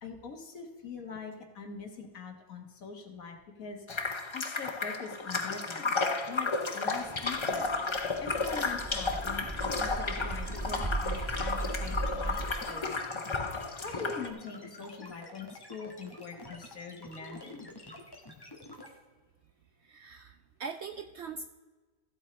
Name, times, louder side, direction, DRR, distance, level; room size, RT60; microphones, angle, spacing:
voice 1, 0.0-3.9 4.3-7.7 8.0-12.9 13.8-17.7, left 5 dB, 70° left, 4 dB, 1.8 m, -43 dB
sound 1, 3.9-14.3, left 3 dB, 35° left, 0.4 m, -33 dB
sound 2, 7.0-12.5, right 2 dB, 15° right, 1.1 m, -37 dB
sound 3, 8.4-18.9, left 1 dB, 15° left, 1.3 m, -48 dB
voice 2, 19.8-21.5, right 5 dB, 65° right, 7 dB, 0.7 m, -42 dB
15.0 x 8.0 x 3.2 m, 1.3 s
omnidirectional pair, 1.5 m